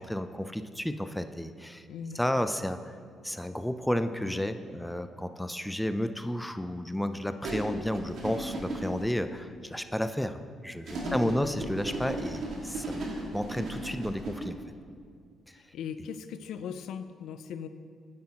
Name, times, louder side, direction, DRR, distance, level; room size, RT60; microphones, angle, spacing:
voice 1, 0.0-1.8 2.1-3.0 3.2-13.1 13.3-14.6, equal, 5° left, 9 dB, 0.4 m, -32 dB
voice 2, 1.9-2.2 11.0-11.6 15.6-17.7, left 7 dB, 80° left, 11 dB, 0.4 m, -39 dB
sound 1, 7.4-9.0 10.9-14.5, right 2 dB, 70° right, 1.9 m, -36 dB
9.5 x 8.5 x 2.9 m, 2.1 s
cardioid pair, 90°, 0 cm